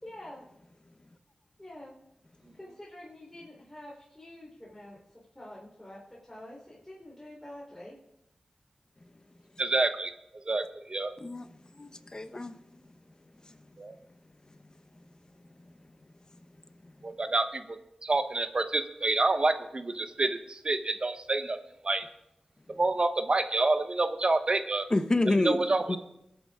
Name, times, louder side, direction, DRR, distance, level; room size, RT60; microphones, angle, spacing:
voice 1, 0.0-0.4 1.6-1.9 2.5-8.0, left 1 dB, 15° left, 3.7 m, -47 dB
voice 2, 9.6-11.1 13.8-14.0 17.0-21.6 21.8-22.1 22.7-24.9 25.4-26.0, right 2 dB, 50° right, 1.1 m, -28 dB
voice 3, 11.2-12.6 13.4-13.6 15.6-15.7 16.8-16.9 24.9-26.0, left 2 dB, 35° left, 1.0 m, -29 dB
21.5 x 8.7 x 3.7 m
cardioid pair, 55°, 2 cm